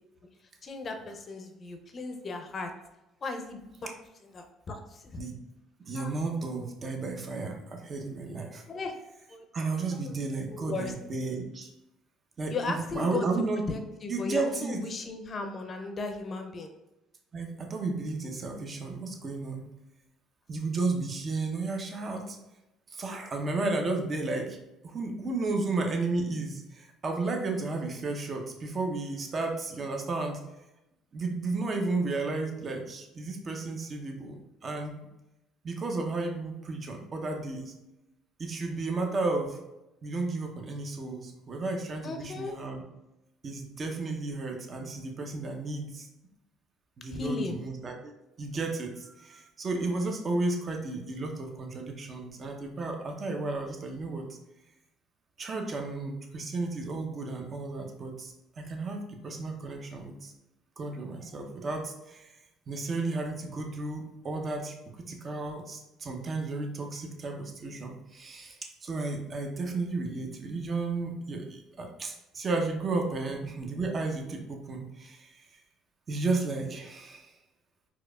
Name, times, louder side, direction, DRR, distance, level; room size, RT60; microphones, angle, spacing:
voice 1, 0.6-2.7 3.2-3.9 4.3-5.2 6.0-6.1 8.7-8.9 9.3-9.5 10.0-10.9 12.5-13.3 13.7-16.7 42.0-42.6 47.1-47.6, left 3 dB, 40° left, 5 dB, 0.5 m, -36 dB
voice 2, 5.8-8.6 9.5-11.7 12.4-13.6 14.1-14.8 17.3-19.6 20.5-22.4 22.9-24.6 24.8-30.4 31.1-35.0 35.6-37.7 38.4-39.6 40.0-42.8 43.4-46.1 47.0-48.1 48.4-54.3 55.4-60.3 60.8-62.4 62.7-75.6 76.1-77.3, right 3 dB, 40° right, 3 dB, 0.7 m, -33 dB
4.5 x 2.4 x 2.3 m, 0.93 s
supercardioid pair, 75°, 0 cm